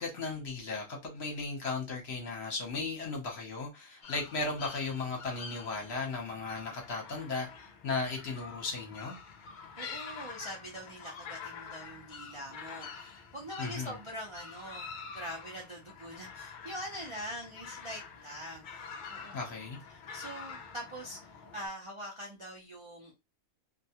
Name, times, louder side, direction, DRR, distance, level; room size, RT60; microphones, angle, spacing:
voice 1, 0.0-9.2 13.6-13.9 19.3-19.8, left 3 dB, 55° left, 1.0 m, -36 dB
sound 1, 4.0-21.7, left 5 dB, 80° left, 0.4 m, -47 dB
voice 2, 9.8-19.4 19.9-23.2, equal, 40° right, 0.4 m, -43 dB
2.5 x 2.2 x 2.8 m
omnidirectional pair, 1.4 m